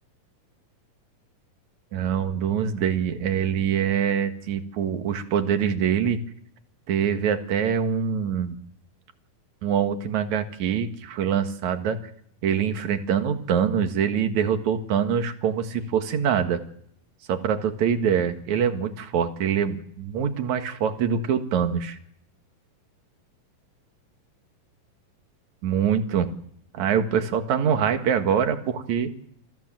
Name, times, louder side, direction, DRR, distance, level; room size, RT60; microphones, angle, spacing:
voice 1, 1.9-6.2 6.9-8.6 9.6-12.0 12.4-16.6 17.3-22.0 25.6-26.3 26.7-29.2, right 8 dB, 60° right, 7 dB, 2.8 m, -24 dB
28.0 x 16.5 x 7.6 m, 0.69 s
omnidirectional pair, 4.2 m